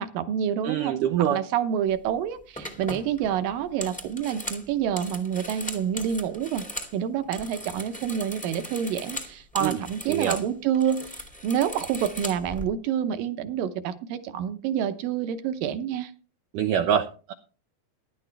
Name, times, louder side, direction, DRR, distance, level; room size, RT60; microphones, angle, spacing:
voice 1, 0.0-1.0 1.3-6.6 6.9-16.1, right 9 dB, 75° right, 10 dB, 2.2 m, -28 dB
voice 2, 0.6-1.4 9.6-9.8 10.1-10.4 16.5-17.3, right 9 dB, 90° right, 7 dB, 1.8 m, -25 dB
sound 1, 1.9-2.1 2.5-6.9 7.2-10.5 10.7-12.6, equal, 5° left, 0.5 m, -38 dB
15.5 x 11.0 x 3.3 m, 0.36 s
omnidirectional pair, 4.6 m